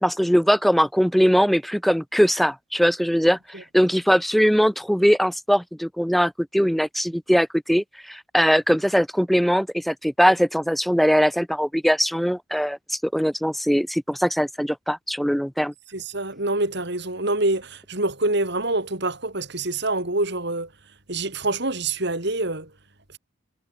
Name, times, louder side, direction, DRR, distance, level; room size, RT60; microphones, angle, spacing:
voice 1, 0.0-15.7, equal, ahead, 1.5 m, -21 dB
voice 2, 15.9-20.7 21.1-22.7, right 2 dB, 60° right, 4.7 m, -26 dB
head